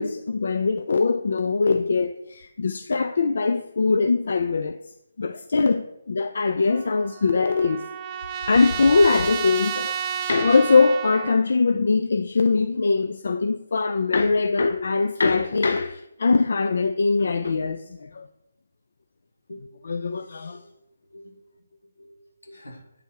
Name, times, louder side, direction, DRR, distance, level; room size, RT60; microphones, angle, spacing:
voice 1, 0.0-4.8 5.2-7.8 8.5-10.0 10.3-18.3 19.9-20.6, left 4 dB, 65° left, 0.3 m, -22 dB
Trumpet, 6.7-11.4, right 8 dB, 25° right, 0.4 m, -31 dB
voice 2, 20.0-20.6 21.0-21.4 22.0-22.8, left 1 dB, 90° left, 1.5 m, -46 dB
8.2 x 3.3 x 4.5 m
figure-of-eight pair, 155°, 0 cm